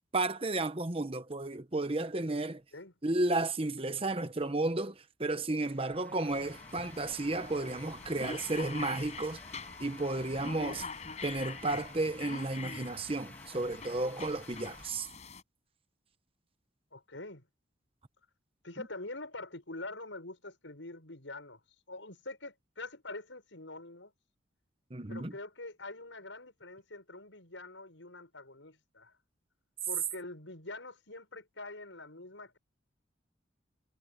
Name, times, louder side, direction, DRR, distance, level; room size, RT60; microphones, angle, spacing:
voice 1, 0.0-2.6 3.0-9.4 9.8-10.9 11.2-15.1 24.9-25.3, right 2 dB, 30° right, 1.1 m, -33 dB
sound 1, 5.7-14.9, left 1 dB, 10° left, 1.8 m, -55 dB
sound 2, 6.3-15.4, left 4 dB, 35° left, 5.3 m, -45 dB
voice 2, 16.9-17.5 18.6-21.6 21.9-24.1 25.1-29.2 29.9-32.6, left 2 dB, 85° left, 6.3 m, -45 dB
head